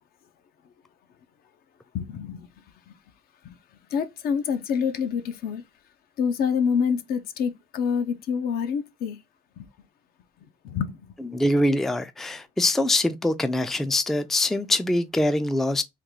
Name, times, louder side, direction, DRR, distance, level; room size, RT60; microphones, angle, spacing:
voice 1, 1.9-2.5 2.9-3.0 3.4-3.6 3.9-5.6 6.2-9.2 9.6-9.7 10.6-11.0, left 6 dB, 65° left, 0.6 m, -27 dB
voice 2, 11.3-15.8, left 1 dB, ahead, 0.3 m, -23 dB
3.6 x 2.3 x 3.0 m
cardioid pair, 110°, 17 cm